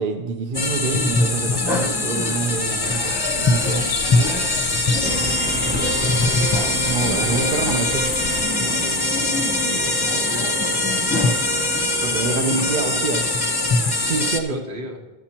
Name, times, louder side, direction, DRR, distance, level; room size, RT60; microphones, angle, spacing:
voice 1, 0.0-3.9 6.8-8.0 12.0-13.3 14.0-14.6, right 4 dB, 55° right, 5 dB, 0.8 m, -26 dB
sound 1, 0.5-14.4, left 2 dB, 25° left, 0.7 m, -22 dB
sound 2, 1.4-8.5, left 8 dB, 60° left, 0.6 m, -34 dB
voice 2, 2.5-2.8 5.6-6.3 8.8-11.2 14.5-15.0, equal, 80° right, 1 dB, 1.5 m, -37 dB
sound 3, 5.0-14.3, right 1 dB, 10° right, 0.5 m, -32 dB
12.5 x 7.2 x 4.4 m, 1.1 s
omnidirectional pair, 1.1 m